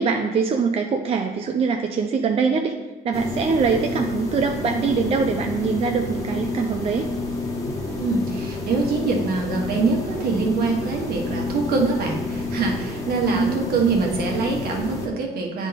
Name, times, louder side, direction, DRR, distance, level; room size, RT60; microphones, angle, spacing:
voice 1, 0.0-2.8 3.0-7.1 13.3-13.6, right 5 dB, 35° right, 4 dB, 0.5 m, -23 dB
sound 1, 3.1-15.1, left 2 dB, 20° left, 1.2 m, -29 dB
voice 2, 8.0-15.7, right 4 dB, 65° right, 0 dB, 1.4 m, -24 dB
9.1 x 3.6 x 4.1 m, 1.1 s
cardioid pair, 110°, 17 cm